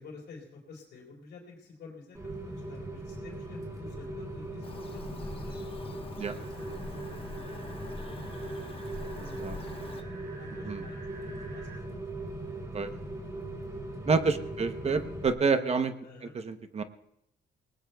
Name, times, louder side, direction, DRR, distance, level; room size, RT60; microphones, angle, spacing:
voice 1, 0.0-5.6 9.0-11.7 16.0-16.3, left 4 dB, 80° left, -4 dB, 4.2 m, -50 dB
Rain, 2.1-15.3, right 1 dB, 20° right, 3.5 m, -39 dB
Bird vocalization bird call bird song, 4.6-10.0, left 3 dB, 30° left, 1.2 m, -45 dB
sound 1, 6.3-11.8, right 3 dB, 60° right, 5.2 m, -53 dB
voice 2, 9.2-9.6 10.6-10.8 12.7-12.9 14.1-15.9 16.3-16.8, right 4 dB, 35° right, 9 dB, 0.9 m, -28 dB
29.0 x 19.5 x 2.3 m, 0.81 s
cardioid pair, 135°, 18 cm